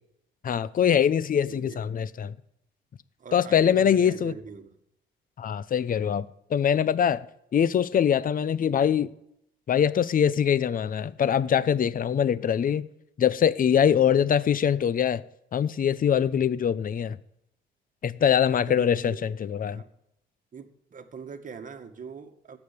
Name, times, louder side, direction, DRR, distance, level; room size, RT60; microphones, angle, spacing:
voice 1, 0.4-2.3 3.3-4.3 5.4-7.3 7.5-9.1 9.7-12.9 13.2-15.2 15.5-17.2 18.0-19.8, left 8 dB, 45° left, 0.7 m, -23 dB
voice 2, 1.4-1.8 3.2-4.8 18.5-19.3 19.6-19.9 20.5-22.6, right 6 dB, 40° right, 1.8 m, -42 dB
17.0 x 7.1 x 8.5 m
cardioid pair, 90°, 20 cm